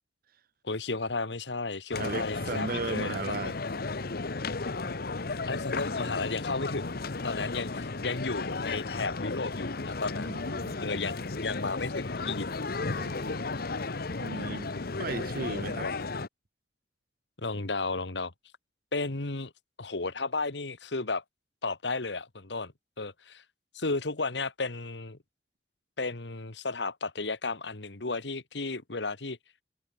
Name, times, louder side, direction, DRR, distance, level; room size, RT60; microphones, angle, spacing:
voice 1, 0.6-3.5 5.5-10.4 10.8-12.5 15.5-15.9 17.4-18.3 18.9-19.5 19.8-21.2 21.6-23.4 23.7-25.2 26.0-29.4, left 3 dB, 80° left, 1.7 m, -34 dB
sound 1, 1.9-16.3, left 3 dB, 60° left, 1.0 m, -34 dB
voice 2, 2.0-3.6 4.7-4.9 6.0-6.1 10.2-10.9 12.9-13.4 14.2-15.9, right 3 dB, 55° right, 0.9 m, -37 dB
head